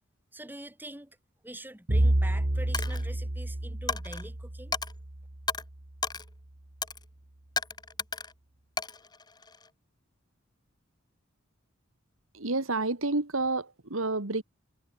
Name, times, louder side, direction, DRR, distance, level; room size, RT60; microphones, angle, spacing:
voice 1, 0.3-1.2 1.4-4.7, right 1 dB, 10° right, 3.8 m, -44 dB
Bowed string instrument, 1.9-6.1, right 1 dB, 45° right, 1.7 m, -29 dB
Coin (dropping), 2.7-3.1 3.9-4.2 4.7-4.9 5.5-5.6 6.0-6.3 6.8-7.0 7.6-8.3 8.8-9.7, left 4 dB, 20° left, 2.0 m, -33 dB
voice 2, 12.3-14.4, right 3 dB, 75° right, 2.2 m, -29 dB
head